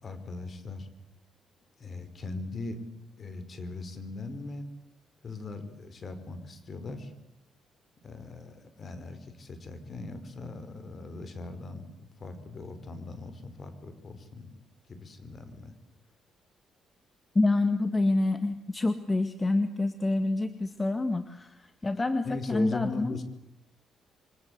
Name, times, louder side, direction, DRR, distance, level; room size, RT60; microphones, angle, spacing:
voice 1, 0.0-0.9 1.8-2.8 3.2-4.7 5.2-7.1 8.0-14.5 14.9-15.7 22.2-23.2, left 3 dB, 45° left, 11 dB, 5.0 m, -39 dB
voice 2, 17.3-23.2, left 2 dB, 20° left, 9 dB, 1.9 m, -27 dB
28.0 x 24.0 x 8.2 m, 0.80 s
cardioid pair, 90°, 0 cm